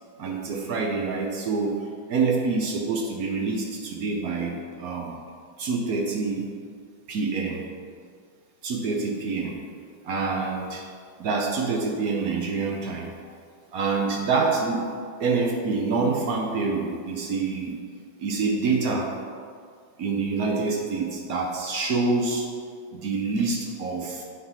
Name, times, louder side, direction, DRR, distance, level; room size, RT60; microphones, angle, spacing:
voice 1, 0.2-1.7 2.1-5.2 5.6-6.5 7.1-7.6 8.6-9.6 10.0-10.8 11.2-13.3 13.7-14.9 15.2-17.8 18.2-19.1 20.0-22.5 22.9-24.2, right 4 dB, 65° right, 0 dB, 0.9 m, -26 dB
8.0 x 3.7 x 5.6 m, 2.1 s
omnidirectional pair, 2.3 m